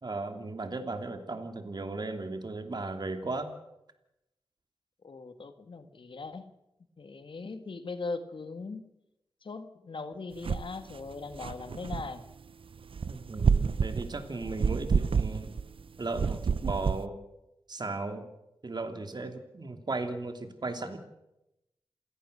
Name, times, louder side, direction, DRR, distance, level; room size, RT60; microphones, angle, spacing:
voice 1, 0.0-3.5 13.1-15.5 16.0-17.2 17.7-18.3 18.6-21.0, right 3 dB, 50° right, 7 dB, 3.0 m, -36 dB
voice 2, 5.0-6.5 7.0-8.9 9.4-12.2, left 3 dB, 65° left, 9 dB, 1.8 m, -40 dB
sound 1, 10.4-10.7 11.1-12.1 12.9-15.8 16.1-17.0, right 6 dB, 70° right, 0.7 m, -28 dB
28.0 x 17.0 x 6.8 m, 0.90 s
wide cardioid pair, 70°, 9 cm